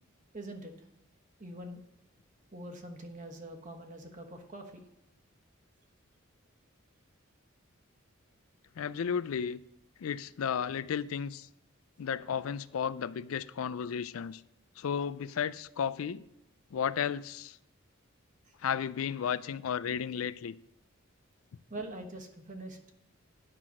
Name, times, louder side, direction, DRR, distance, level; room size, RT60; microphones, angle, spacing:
voice 1, 0.3-0.7 1.4-1.8 2.5-4.8 21.7-22.8, right 1 dB, 40° right, 4 dB, 1.2 m, -43 dB
voice 2, 8.8-9.6 10.0-11.5 12.0-14.4 14.8-16.2 16.7-17.6 18.6-20.5, left 7 dB, 80° left, 17 dB, 0.4 m, -33 dB
9.7 x 5.9 x 6.1 m, 0.78 s
head